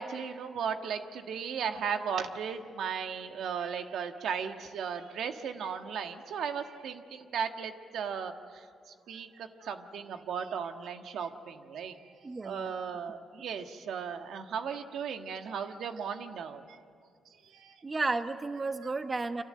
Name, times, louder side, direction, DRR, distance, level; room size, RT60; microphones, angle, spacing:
voice 1, 0.0-8.3 9.1-12.0 12.4-16.6 17.5-17.7, right 7 dB, 80° right, 6 dB, 1.5 m, -36 dB
voice 2, 12.2-12.7 17.8-19.4, right 3 dB, 30° right, 8 dB, 1.1 m, -32 dB
30.0 x 25.5 x 7.7 m, 2.2 s
cardioid pair, 100°, 0 cm